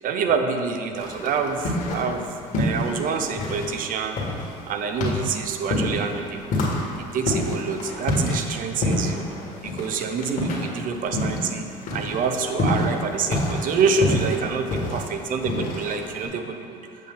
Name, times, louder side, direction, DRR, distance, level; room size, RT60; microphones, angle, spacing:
voice 1, 0.0-4.2 4.7-6.6 7.1-9.2 9.6-11.7 11.9-16.8, right 5 dB, 55° right, 6 dB, 0.6 m, -26 dB
sound 1, 1.0-2.2 2.5-11.5 11.8-16.3, left 1 dB, 50° left, 1.6 m, -27 dB
7.5 x 5.5 x 3.7 m, 2.5 s
supercardioid pair, 90°, 17 cm